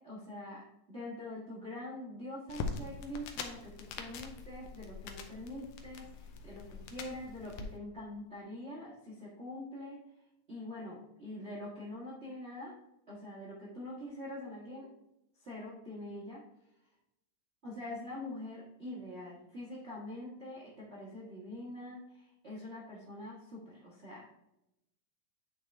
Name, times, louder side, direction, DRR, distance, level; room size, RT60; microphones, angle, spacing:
voice 1, 0.0-10.0 10.5-12.8 13.1-14.9 15.4-16.4 17.6-24.3, left 1 dB, 60° right, -6 dB, 0.6 m, -44 dB
sound 1, 2.5-7.6, left 4 dB, 80° left, 2.1 m, -43 dB
8.8 x 4.7 x 3.3 m, 0.89 s
omnidirectional pair, 3.6 m